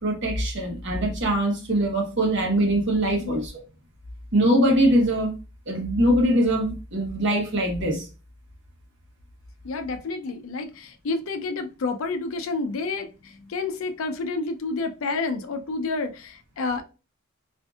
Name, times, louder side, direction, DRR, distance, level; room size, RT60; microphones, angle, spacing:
voice 1, 0.0-3.5 4.3-5.3 5.7-8.1, right 1 dB, 60° right, 0.9 m, -22 dB
voice 2, 9.6-16.8, left 3 dB, 80° left, 0.4 m, -29 dB
2.5 x 2.5 x 2.3 m
head